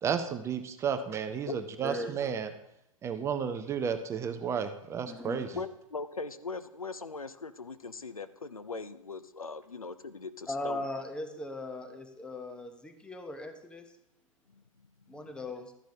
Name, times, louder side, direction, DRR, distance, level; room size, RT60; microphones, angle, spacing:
voice 1, 0.0-2.5 3.0-5.6, right 7 dB, 15° right, 9 dB, 0.5 m, -32 dB
voice 2, 1.8-2.2 5.0-5.4 10.5-13.9 15.1-15.7, left 1 dB, 5° left, 7 dB, 0.8 m, -38 dB
voice 3, 5.6-10.8 15.2-15.3, left 4 dB, 85° left, 13 dB, 0.6 m, -40 dB
13.0 x 10.5 x 2.8 m, 0.82 s
figure-of-eight pair, 105°, 18 cm